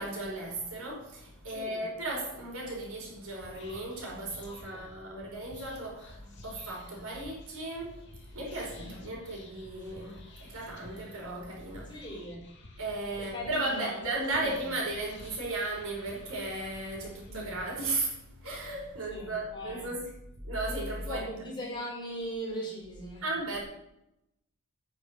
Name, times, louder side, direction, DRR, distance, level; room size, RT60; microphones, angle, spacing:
voice 1, 0.0-12.0 12.8-20.1 20.4-21.3 23.2-23.6, right 2 dB, 80° right, -1 dB, 5.1 m, -35 dB
voice 2, 1.5-1.8 4.5-4.9 8.8-9.2 11.9-12.5 13.2-14.7 17.3-17.5 19.1-19.9 21.0-23.2, equal, 20° left, -4 dB, 5.2 m, -40 dB
Whispering, 3.2-17.9, left 2 dB, 55° left, 2.6 m, -53 dB
9.5 x 9.1 x 6.5 m, 0.85 s
head